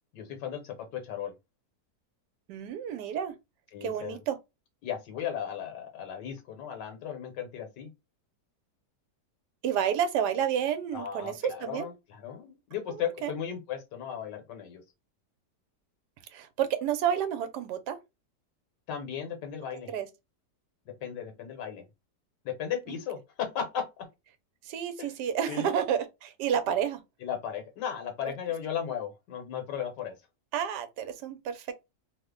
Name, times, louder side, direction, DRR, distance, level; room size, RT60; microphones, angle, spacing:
voice 1, 0.1-1.3 3.7-4.2 4.8-7.9 10.9-14.8 18.9-19.9 20.9-21.9 22.4-23.9 25.0-25.2 25.5-25.7 27.2-30.1, left 8 dB, 80° left, 1.5 m, -36 dB
voice 2, 2.5-3.3 3.8-4.4 9.6-11.9 12.9-13.3 16.3-18.0 19.9-20.1 24.6-27.0 30.5-31.7, right 9 dB, 80° right, 1.2 m, -30 dB
3.2 x 2.1 x 3.6 m
omnidirectional pair, 1.8 m